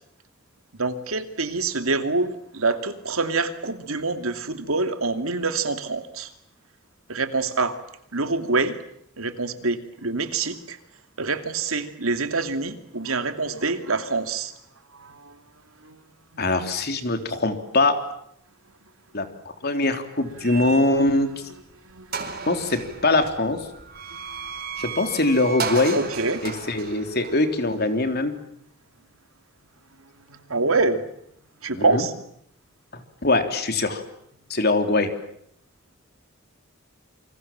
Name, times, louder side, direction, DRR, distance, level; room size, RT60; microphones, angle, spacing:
voice 1, 0.8-6.3 7.1-7.8 8.1-8.8 9.2-10.8 11.2-14.5 15.0-15.4 15.8-16.0 16.3-16.4 21.9-22.5 25.9-26.4 30.3-31.0 31.6-32.1, right 3 dB, 90° right, 8 dB, 2.6 m, -26 dB
voice 2, 16.4-18.0 19.1-19.3 19.6-21.3 22.5-23.6 24.8-26.0 26.4-28.4 31.7-32.1 32.9-34.0 34.5-35.1, left 2 dB, 50° left, 6 dB, 3.6 m, -22 dB
sound 1, 20.4-21.3 21.7-21.8 22.1-28.2, right 5 dB, 45° right, 4.7 m, -35 dB
28.5 x 26.0 x 7.6 m, 0.71 s
head